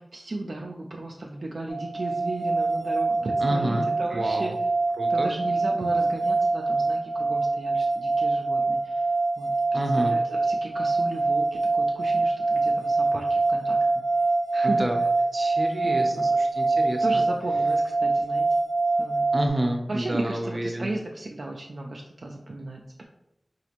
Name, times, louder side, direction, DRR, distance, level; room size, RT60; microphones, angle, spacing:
voice 1, 0.0-4.5 5.1-9.0 9.4-9.5 10.0-13.8 14.5-14.9 15.8-16.2 17.0-18.5 19.0-19.2 19.9-23.0, right 2 dB, 70° right, 0 dB, 0.4 m, -35 dB
sound 1, 1.7-19.5, right 3 dB, 25° left, 0.6 m, -24 dB
voice 2, 3.4-4.5 5.0-5.3 9.7-10.1 14.6-15.0 15.3-17.2 19.3-20.9, right 1 dB, 45° right, 2 dB, 0.7 m, -29 dB
4.1 x 2.5 x 2.9 m, 0.82 s
cardioid pair, 45°, 0 cm